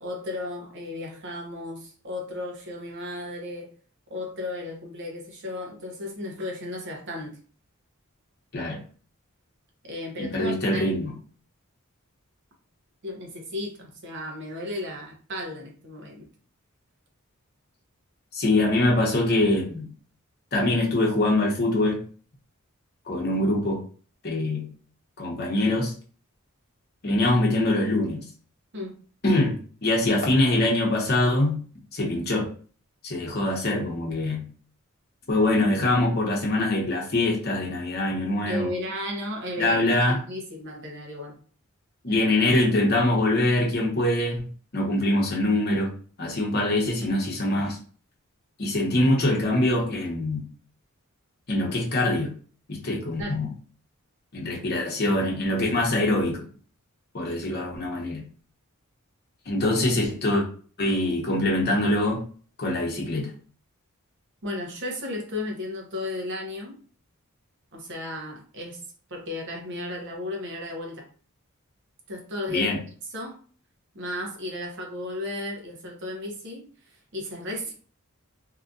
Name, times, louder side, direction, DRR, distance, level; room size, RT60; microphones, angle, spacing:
voice 1, 0.0-3.7 4.1-7.4 9.8-10.9 13.0-16.3 28.7-29.0 38.5-41.4 53.2-53.4 64.4-66.8 67.7-68.8 69.1-71.1 72.1-72.8 73.1-73.4 73.9-76.7 77.1-77.7, left 1 dB, 55° right, 1 dB, 0.8 m, -34 dB
voice 2, 10.2-11.1 18.3-19.9 20.5-22.0 23.1-23.8 24.2-24.7 25.2-25.9 27.0-28.2 29.2-29.5 29.8-31.6 31.9-32.5 33.0-34.4 35.3-38.7 39.6-40.2 42.0-44.5 44.7-45.9 46.2-47.8 48.6-50.5 51.5-52.3 52.7-53.5 54.3-56.4 57.1-58.2 59.5-60.4 60.8-62.2 62.6-63.3 72.5-72.8, left 1 dB, 50° left, -1 dB, 0.9 m, -23 dB
2.8 x 2.4 x 2.6 m, 0.41 s
head